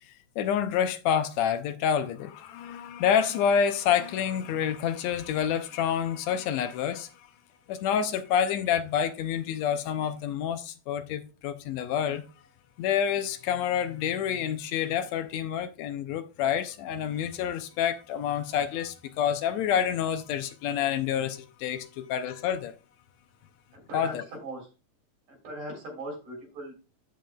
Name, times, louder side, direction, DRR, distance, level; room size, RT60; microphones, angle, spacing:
voice 1, 0.1-7.3 7.7-12.2 12.8-22.7 23.9-24.2, left 8 dB, 75° left, 1.8 m, -28 dB
voice 2, 23.7-24.7 25.3-26.7, right 1 dB, 80° right, 4.8 m, -39 dB
14.0 x 5.2 x 2.2 m
omnidirectional pair, 3.3 m